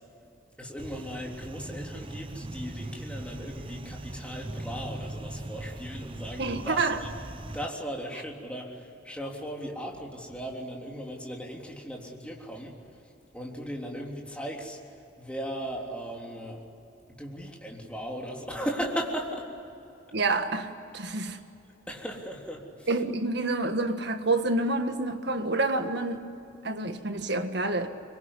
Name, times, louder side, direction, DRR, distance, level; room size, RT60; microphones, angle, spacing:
voice 1, 0.6-7.1 7.5-13.0 13.3-16.6 17.1-19.5 21.9-22.9, equal, 5° left, -1 dB, 3.5 m, -37 dB
sound 1, 0.8-7.7, right 1 dB, 30° right, 0.8 m, -40 dB
voice 2, 6.4-7.0 20.1-21.4 22.9-26.3 26.6-27.9, right 2 dB, 60° right, 7 dB, 1.7 m, -28 dB
25.5 x 22.5 x 9.9 m, 2.8 s
head